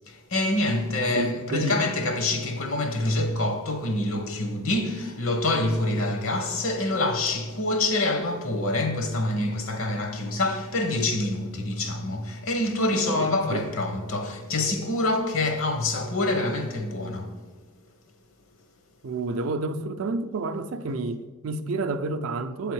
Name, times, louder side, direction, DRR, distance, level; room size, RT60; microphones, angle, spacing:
voice 1, 0.1-17.3, left 2 dB, 70° left, 1.0 m, -26 dB
voice 2, 1.2-1.8 12.9-13.6 19.0-22.7, right 3 dB, 75° right, 0.4 m, -30 dB
7.6 x 3.6 x 4.6 m
head